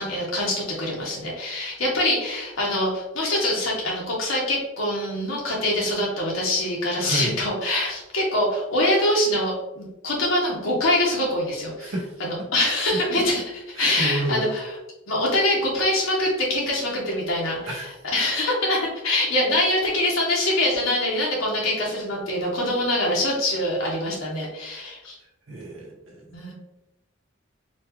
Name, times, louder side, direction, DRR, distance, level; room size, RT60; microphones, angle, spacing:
voice 1, 0.0-11.9 12.5-13.4 13.8-14.7 15.1-25.2 26.3-26.5, left 1 dB, 85° left, -3 dB, 1.1 m, -24 dB
voice 2, 7.0-7.4 11.8-12.1 12.5-12.8 13.7-14.6 17.7-17.9 25.5-26.3, right 1 dB, 85° right, -3 dB, 0.9 m, -30 dB
4.2 x 2.4 x 3.0 m, 0.95 s
head